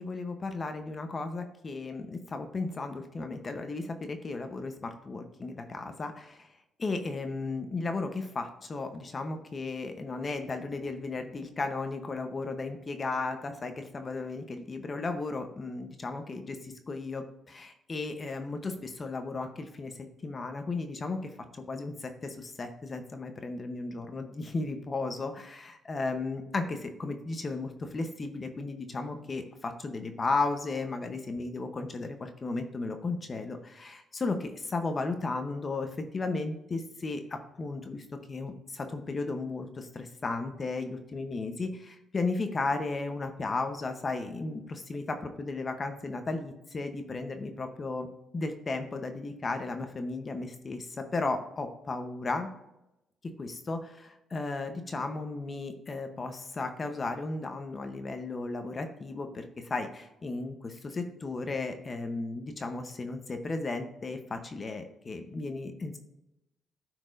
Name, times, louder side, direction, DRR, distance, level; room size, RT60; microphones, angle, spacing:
voice 1, 0.0-6.5 6.8-19.9 20.2-48.1 48.3-52.5 53.4-66.0, left 3 dB, 35° left, 6 dB, 0.9 m, -35 dB
12.0 x 4.5 x 2.6 m, 0.90 s
cardioid pair, 90°, 0 cm